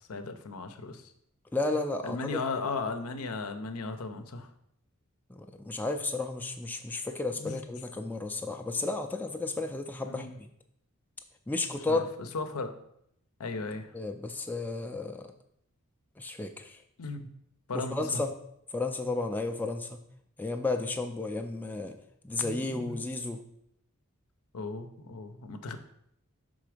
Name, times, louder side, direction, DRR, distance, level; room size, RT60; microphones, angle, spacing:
voice 1, 0.1-1.0 2.0-4.5 7.4-7.6 10.0-10.3 11.9-12.0 12.3-12.8 13.4-13.9 17.0-17.3 17.7-18.2 22.4-23.0 24.5-25.8, left 3 dB, 85° left, 8 dB, 0.6 m, -36 dB
voice 2, 1.5-2.4 5.3-10.5 11.5-12.0 13.9-15.3 16.2-16.8 17.7-18.4 18.7-20.0 20.4-22.0 22.2-23.4, left 3 dB, 10° left, 4 dB, 0.3 m, -33 dB
5.9 x 3.9 x 4.9 m, 0.74 s
head